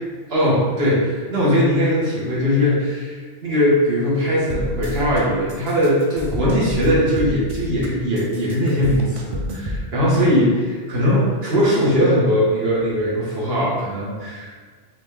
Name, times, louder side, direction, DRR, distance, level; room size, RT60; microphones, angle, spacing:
voice 1, 0.3-14.5, equal, 65° right, -7 dB, 1.2 m, -20 dB
sound 1, 4.5-5.2 5.5-7.9 8.2-9.8, left 1 dB, 40° right, 0.4 m, -29 dB
3.9 x 3.1 x 3.4 m, 1.5 s
omnidirectional pair, 1.1 m